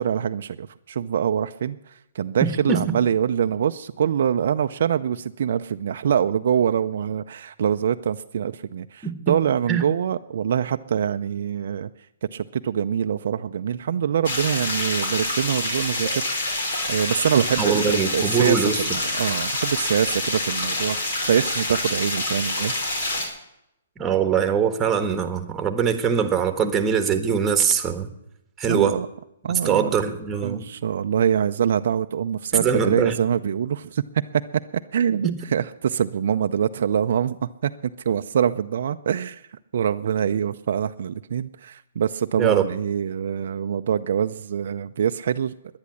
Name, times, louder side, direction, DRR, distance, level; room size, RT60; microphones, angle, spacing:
voice 1, 0.0-11.9 12.3-16.6 16.9-22.7 28.6-29.1 29.4-29.9 30.4-34.4 34.7-39.4 39.7-45.5, right 8 dB, 60° right, 8 dB, 0.5 m, -24 dB
voice 2, 2.4-2.8 9.0-9.3 9.7-9.8 17.6-18.8 24.0-28.1 28.6-29.0 29.6-30.6 32.5-33.2 42.4-42.6, right 7 dB, 15° right, 7 dB, 1.4 m, -22 dB
sound 1, 14.2-23.3, left 2 dB, 65° left, 4.7 m, -27 dB
10.5 x 10.5 x 9.8 m, 0.83 s
hypercardioid pair, 145°, 0 cm